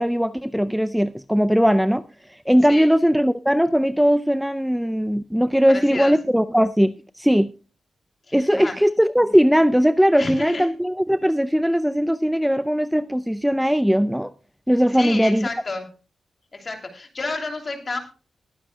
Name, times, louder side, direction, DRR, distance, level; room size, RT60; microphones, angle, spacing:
voice 1, 0.0-2.0 2.3-7.5 8.3-14.3 14.7-15.5, equal, ahead, 0.4 m, -19 dB
voice 2, 5.7-6.2 8.3-8.7 10.1-10.7 14.9-15.9 16.5-18.0, left 3 dB, 40° left, 2.9 m, -30 dB
20.5 x 9.8 x 2.2 m
cardioid pair, 95°, 0 cm